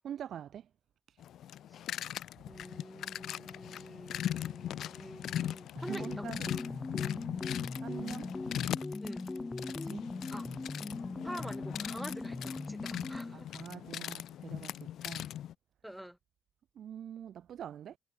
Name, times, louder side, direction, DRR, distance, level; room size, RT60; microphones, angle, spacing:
voice 1, 0.0-0.7 1.1-1.2 2.5-2.6 5.7-6.8 7.8-8.3 9.6-10.2 13.3-15.3 16.8-18.0, right 9 dB, 65° right, 1.9 m, -45 dB
sound 1, 1.2-15.5, left 11 dB, 75° left, 1.7 m, -40 dB
voice 2, 2.4-6.3 9.0-9.3 10.3-10.5 11.2-13.6 15.8-16.2, equal, 5° right, 3.0 m, -46 dB
sound 2, 5.8-13.4, left 3 dB, 20° left, 2.0 m, -40 dB
cardioid pair, 90°, 0 cm